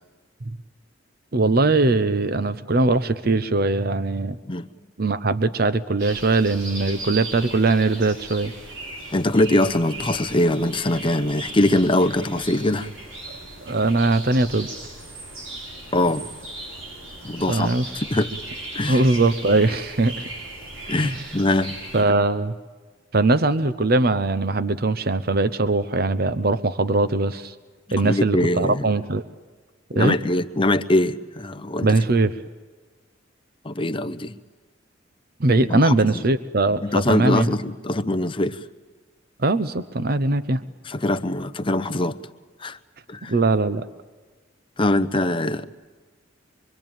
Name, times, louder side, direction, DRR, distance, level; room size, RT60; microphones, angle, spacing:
voice 1, 1.3-4.4 5.0-8.5 13.6-14.7 17.5-17.9 18.9-20.3 21.0-21.3 21.9-22.5 23.1-27.5 27.9-29.2 29.9-30.2 31.8-32.4 35.4-37.6 39.4-40.6 43.2-43.9, right 2 dB, 50° right, 14 dB, 0.8 m, -21 dB
sound 1, 6.0-22.0, right 2 dB, 85° right, 7.7 m, -37 dB
voice 2, 9.1-12.9 15.9-16.2 17.2-17.7 18.0-18.3 18.7-19.0 20.9-21.8 27.9-28.9 29.9-31.9 33.6-34.4 35.7-36.2 36.8-38.6 40.8-42.2 42.6-42.8 43.1-43.3 44.8-45.6, left 1 dB, 25° left, 10 dB, 0.9 m, -22 dB
25.0 x 24.0 x 9.0 m, 1.3 s
head